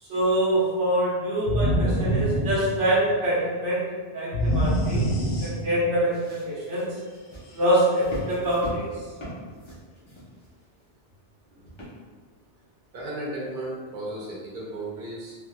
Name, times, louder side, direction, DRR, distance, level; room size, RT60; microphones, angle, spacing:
voice 1, 0.1-7.0 7.5-8.9, right 1 dB, 80° right, -6 dB, 1.2 m, -25 dB
sound 1, 1.5-3.2 4.3-6.0, right 1 dB, 85° left, 1.0 m, -25 dB
sound 2, 6.1-10.8 11.7-12.3 12.9-13.0, equal, 25° left, 0.8 m, -40 dB
voice 2, 12.9-15.4, right 1 dB, 50° right, -6 dB, 1.0 m, -34 dB
3.5 x 2.9 x 2.3 m, 1.5 s
omnidirectional pair, 1.2 m